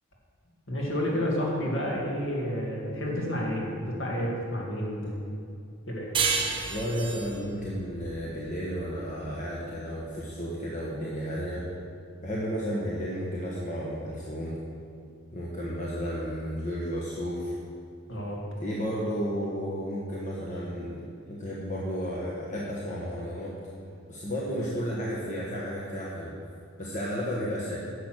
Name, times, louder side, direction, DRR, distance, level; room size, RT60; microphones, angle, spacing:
voice 1, 0.7-5.3 5.9-6.2 18.1-18.4, equal, 55° left, -3 dB, 2.4 m, -30 dB
sound 1, 6.1-9.3, right 5 dB, 25° right, 0.9 m, -31 dB
voice 2, 6.6-11.7 12.2-14.6 15.3-17.5 18.6-23.6 24.1-26.4 26.8-27.8, equal, 35° left, -5 dB, 1.2 m, -33 dB
10.5 x 7.1 x 6.3 m, 2.5 s
head